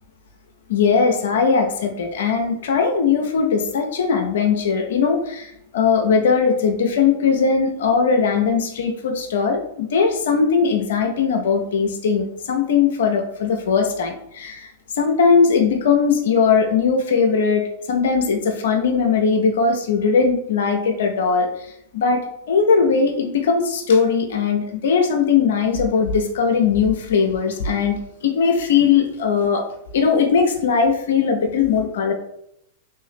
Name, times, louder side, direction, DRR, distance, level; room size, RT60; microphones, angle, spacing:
voice 1, 0.7-14.7 14.9-21.7 21.9-22.2 22.5-29.6 29.9-32.1, left 5 dB, 70° left, 3 dB, 0.5 m, -19 dB
3.2 x 2.6 x 3.4 m, 0.75 s
figure-of-eight pair, 95°, 0 cm